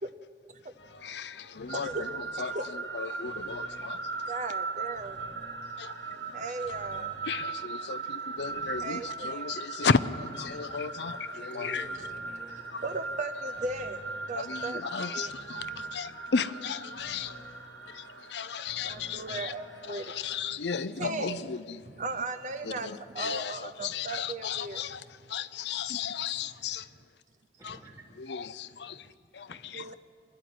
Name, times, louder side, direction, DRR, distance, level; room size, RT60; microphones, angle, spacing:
sound 1, 0.8-20.2, left 1 dB, 90° left, 2.2 m, -51 dB
voice 1, 1.0-4.1 5.8-6.4 7.2-11.9 12.7-12.8 14.3-15.5 15.9-17.3 17.9-18.0 18.3-19.5 19.9-21.8 22.6-26.9 27.6-27.8 28.2-29.9, left 5 dB, 70° left, 0.6 m, -34 dB
voice 2, 1.7-2.0 2.4-2.7 4.3-5.2 6.3-7.1 8.8-9.6 10.5-10.6 11.4-11.5 12.8-14.8 15.1-15.3 18.8-20.1 21.0-21.5 22.0-22.9 23.1-24.8 29.7-29.9, right 2 dB, 45° right, 0.8 m, -36 dB
sound 2, 1.7-20.5, right 4 dB, 90° right, 1.2 m, -39 dB
voice 3, 11.3-12.7 27.6-28.1 29.5-29.6, right 1 dB, 20° right, 2.3 m, -50 dB
26.5 x 11.0 x 9.6 m
head